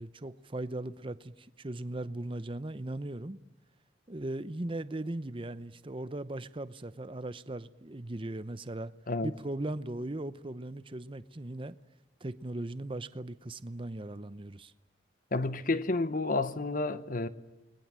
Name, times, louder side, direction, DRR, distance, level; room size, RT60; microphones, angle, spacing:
voice 1, 0.0-3.4 4.1-8.9 9.2-11.7 12.2-14.7, right 1 dB, 30° right, 0.8 m, -38 dB
voice 2, 15.3-17.3, left 2 dB, 50° left, 0.9 m, -30 dB
29.0 x 21.0 x 7.5 m
head